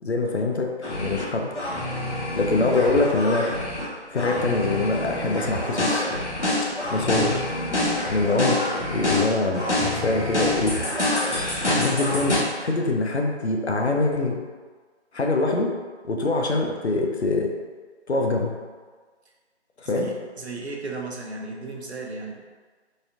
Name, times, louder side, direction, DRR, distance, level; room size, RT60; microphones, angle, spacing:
voice 1, 0.0-1.6 2.3-3.5 4.1-6.1 6.6-7.5 8.1-8.6 8.9-10.7 11.7-14.4 15.1-15.7 16.0-17.5 18.1-18.5 19.8-20.1, left 2 dB, 70° left, 1 dB, 0.6 m, -24 dB
sound 1, 0.8-1.3 1.6-3.9 4.2-12.4, left 1 dB, 85° left, 1.2 m, -26 dB
voice 2, 19.8-22.4, right 3 dB, 70° right, -1 dB, 0.7 m, -35 dB
4.1 x 2.5 x 2.4 m, 1.5 s
figure-of-eight pair, 165°, 34 cm